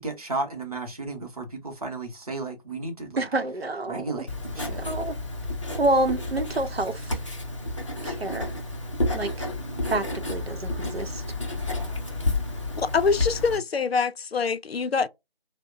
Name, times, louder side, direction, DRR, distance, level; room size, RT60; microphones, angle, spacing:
voice 1, 0.0-3.2 3.9-4.8, right 3 dB, 40° right, 0.8 m, -34 dB
voice 2, 3.2-4.3 4.7-5.2 5.8-7.1 8.0-8.5 9.1-9.5 9.8-11.2, right 2 dB, 85° right, 0.7 m, -28 dB
Writing, 4.3-13.6, left 2 dB, 30° left, 0.6 m, -31 dB
voice 3, 12.8-15.1, left 5 dB, 80° left, 0.5 m, -24 dB
2.8 x 2.1 x 2.4 m
figure-of-eight pair, 160°, 30 cm